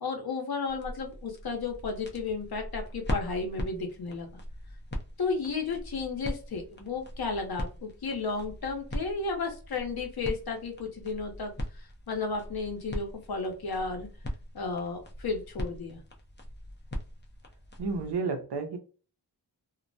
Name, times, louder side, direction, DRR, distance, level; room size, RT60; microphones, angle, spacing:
voice 1, 0.0-4.4 5.2-14.1 14.5-16.0, left 4 dB, 60° left, 0.8 m, -33 dB
sound 1, 0.7-18.2, equal, 25° left, 0.5 m, -40 dB
voice 2, 17.8-18.8, right 4 dB, 70° right, 0.7 m, -31 dB
2.3 x 2.1 x 2.6 m
wide cardioid pair, 80°, 42 cm